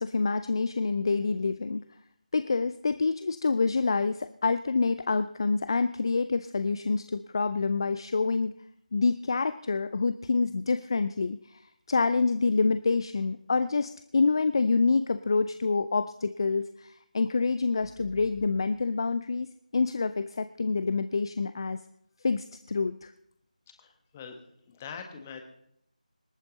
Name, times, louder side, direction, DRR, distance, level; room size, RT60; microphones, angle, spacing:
voice 1, 0.0-1.8 2.3-8.5 8.9-11.6 11.9-21.8 22.2-23.1, left 4 dB, 35° left, 12 dB, 0.5 m, -27 dB
voice 2, 23.8-24.4 24.7-25.4, left 6 dB, 15° left, 5 dB, 1.5 m, -43 dB
26.0 x 8.8 x 4.0 m, 0.77 s
figure-of-eight pair, 165°, 4 cm